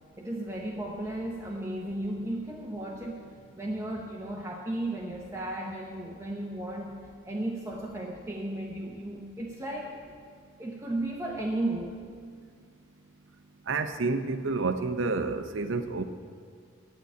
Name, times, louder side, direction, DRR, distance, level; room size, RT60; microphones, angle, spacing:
voice 1, 0.2-3.3 3.5-6.9 7.2-10.0 10.6-12.0, right 1 dB, 15° right, -2 dB, 0.7 m, -34 dB
voice 2, 13.7-16.0, right 3 dB, 70° right, 9 dB, 0.6 m, -29 dB
9.6 x 6.5 x 8.2 m, 2.1 s
head